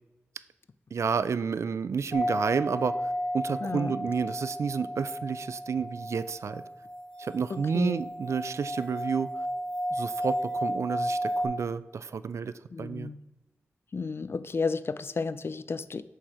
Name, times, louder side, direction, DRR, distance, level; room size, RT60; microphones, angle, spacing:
voice 1, 0.9-2.9 3.3-6.6 7.2-9.3 9.9-12.5 12.8-13.1, right 6 dB, 75° right, 15 dB, 0.3 m, -30 dB
sound 1, 2.1-11.5, equal, 25° left, 2.4 m, -33 dB
voice 2, 3.6-4.0 7.5-8.0 12.7-13.2 13.9-16.0, left 4 dB, 55° left, 15 dB, 0.4 m, -32 dB
6.2 x 6.2 x 4.8 m, 0.98 s
wide cardioid pair, 75°, 5 cm